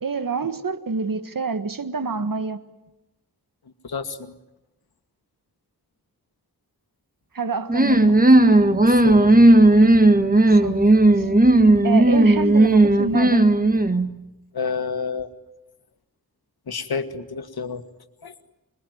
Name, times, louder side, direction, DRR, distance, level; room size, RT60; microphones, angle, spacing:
voice 1, 0.0-2.6 7.3-8.2 10.5-11.3 11.8-13.5, right 4 dB, 65° right, 1.7 m, -27 dB
voice 2, 3.8-4.3 8.9-9.5 14.5-15.3 16.7-17.8 18.2-18.3, left 5 dB, 90° left, 1.8 m, -29 dB
sound 1, 7.7-14.1, right 2 dB, 25° right, 1.6 m, -15 dB
26.5 x 22.0 x 9.4 m
wide cardioid pair, 85°, 37 cm